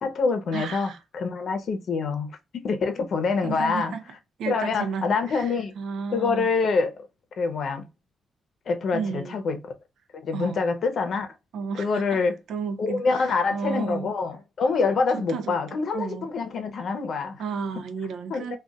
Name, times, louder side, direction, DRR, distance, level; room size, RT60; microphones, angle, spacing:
voice 1, 0.0-3.9 4.5-5.7 6.1-7.0 7.4-7.9 8.7-9.6 10.2-11.3 11.8-12.4 12.8-17.4 18.3-18.6, left 4 dB, 55° left, 0.7 m, -26 dB
voice 2, 0.5-1.0 3.4-4.0 4.4-6.5 8.9-9.4 10.3-10.6 11.5-12.2 12.5-14.1 15.1-15.5 15.9-16.3 17.4-18.6, right 5 dB, 75° right, 0.5 m, -32 dB
3.8 x 2.4 x 2.3 m
cardioid pair, 125°, 0 cm